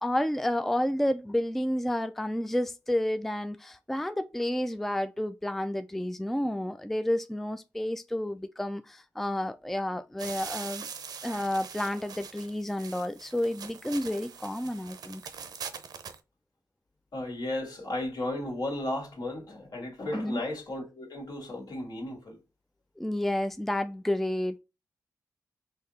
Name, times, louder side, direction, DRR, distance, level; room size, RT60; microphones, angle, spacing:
voice 1, 0.0-10.9 11.2-15.2 20.1-20.4 23.0-24.6, left 1 dB, 5° left, 0.3 m, -30 dB
sound 1, 10.2-16.2, right 6 dB, 75° right, 0.6 m, -42 dB
voice 2, 17.1-22.4, left 1 dB, 70° left, 2.0 m, -34 dB
3.8 x 2.8 x 4.0 m
cardioid pair, 75°, 7 cm